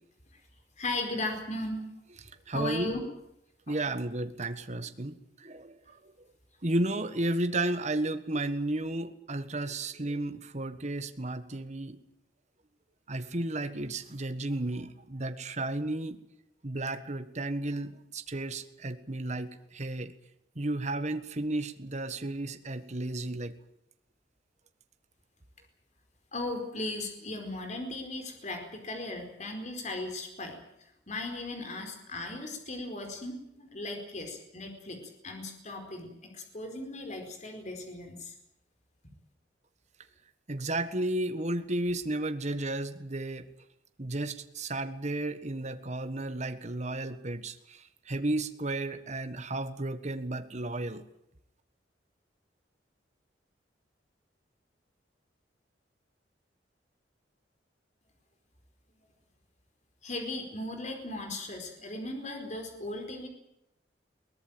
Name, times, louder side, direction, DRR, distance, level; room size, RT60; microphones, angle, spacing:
voice 1, 0.8-1.9 2.5-3.0 3.7-3.9 26.3-30.6 31.1-35.0 35.2-38.3 60.0-63.3, left 2 dB, 40° left, 4 dB, 4.6 m, -37 dB
voice 2, 2.5-2.9 3.7-6.0 6.6-12.0 13.1-16.2 16.6-20.1 20.5-23.5 40.5-43.5 44.0-47.8 48.1-51.0, right 2 dB, 40° right, 9 dB, 1.5 m, -33 dB
22.0 x 18.5 x 8.9 m, 0.81 s
head